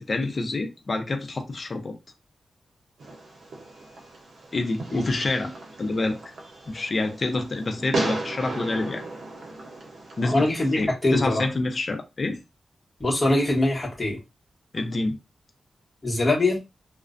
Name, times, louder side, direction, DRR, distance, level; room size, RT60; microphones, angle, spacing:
voice 1, 0.0-1.9 4.5-5.5 5.8-6.2 6.7-9.0 10.2-10.4 10.8-12.4 14.7-15.2, left 2 dB, 45° left, 0.6 m, -27 dB
Fireworks, 3.0-10.8, right 2 dB, 75° right, 0.7 m, -35 dB
voice 2, 10.2-11.5 13.0-14.2 16.0-16.6, left 2 dB, 25° left, 1.2 m, -23 dB
2.4 x 2.1 x 2.5 m
wide cardioid pair, 100°, 0 cm